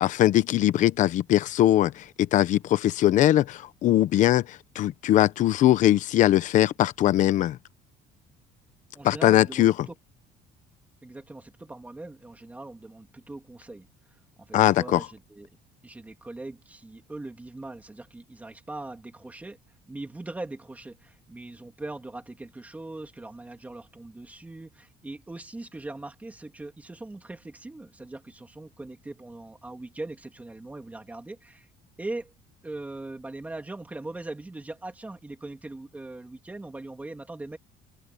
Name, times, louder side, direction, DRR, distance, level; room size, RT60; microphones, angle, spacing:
voice 1, 0.0-7.6 9.0-9.7 14.5-15.0, left 13 dB, 45° left, 0.9 m, -21 dB
voice 2, 8.9-10.0 11.0-13.9 14.4-15.6 15.8-19.6 19.9-31.7 32.0-32.3 32.6-37.6, right 2 dB, 10° right, 2.9 m, -40 dB
cardioid pair, 180°, 17 cm